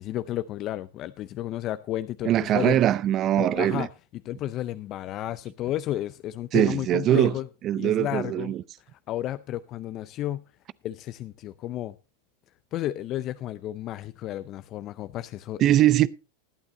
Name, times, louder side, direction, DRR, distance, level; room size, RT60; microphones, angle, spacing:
voice 1, 0.0-2.8 3.4-3.9 4.3-7.5 7.8-8.5 8.9-10.4 10.8-11.9 12.7-15.7, left 13 dB, 45° left, 0.5 m, -32 dB
voice 2, 2.2-3.9 6.5-7.3 7.6-8.6 15.6-16.1, right 12 dB, 40° right, 0.5 m, -22 dB
20.0 x 8.8 x 2.7 m
hypercardioid pair, 100°, 0 cm